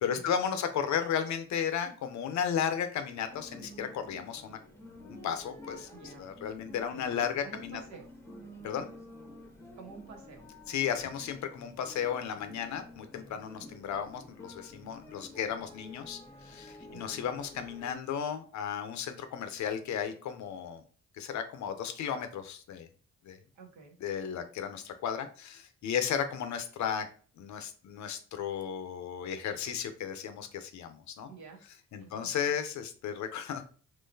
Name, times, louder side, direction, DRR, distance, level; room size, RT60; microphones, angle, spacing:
voice 1, 0.0-4.6 4.9-7.8 8.6-8.9 10.7-20.8 21.1-22.9 23.2-23.4 24.0-27.1 27.4-31.3 31.9-33.6, left 8 dB, 70° left, 8 dB, 0.7 m, -34 dB
sound 1, 3.3-17.9, left 1 dB, 10° left, 0.8 m, -50 dB
voice 2, 5.9-6.3 6.9-8.1 9.8-10.5 13.5-13.8 16.9-17.2 23.5-24.0 31.3-31.6 32.0-32.3, right 5 dB, 70° right, 2 dB, 1.1 m, -50 dB
3.8 x 2.9 x 2.7 m, 0.40 s
cardioid pair, 90°, 30 cm